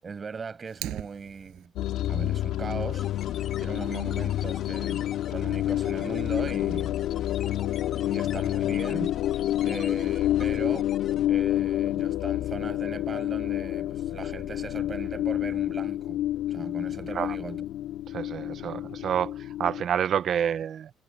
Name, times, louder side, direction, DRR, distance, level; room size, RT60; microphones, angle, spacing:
voice 1, 0.0-1.7 2.1-3.1 3.6-7.0 8.1-9.2 9.6-10.9 11.3-16.2 16.5-17.6, right 5 dB, 35° right, 6.3 m, -39 dB
Fire, 0.7-1.7, right 15 dB, 85° right, 7.3 m, -38 dB
sound 1, 1.8-19.8, left 13 dB, 85° left, 2.8 m, -28 dB
sound 2, 2.9-11.3, left 8 dB, 50° left, 2.2 m, -43 dB
voice 2, 18.1-20.9, right 8 dB, 55° right, 0.8 m, -28 dB
cardioid pair, 110°, 0 cm